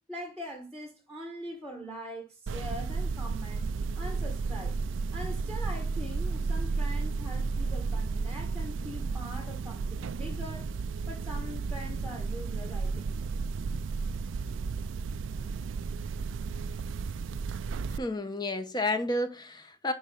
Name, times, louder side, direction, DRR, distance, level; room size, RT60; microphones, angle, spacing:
voice 1, 0.1-4.8 5.1-10.7 11.1-13.4 15.4-15.5, equal, 5° left, 1.5 m, -42 dB
sound 1, 2.5-18.0, right 4 dB, 85° right, 0.4 m, -33 dB
voice 2, 18.0-19.9, left 2 dB, 20° left, 1.0 m, -31 dB
10.0 x 4.7 x 3.9 m
head